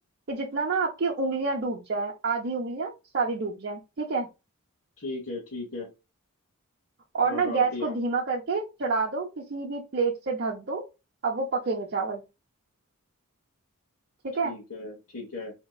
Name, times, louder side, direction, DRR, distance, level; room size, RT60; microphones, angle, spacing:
voice 1, 0.3-4.3 7.1-10.8 11.2-12.2 14.2-14.5, right 4 dB, 50° right, -3 dB, 0.7 m, -28 dB
voice 2, 5.0-5.9 7.2-8.0 14.4-15.5, left 2 dB, 55° left, -2 dB, 1.3 m, -36 dB
4.4 x 2.8 x 2.3 m, 0.26 s
head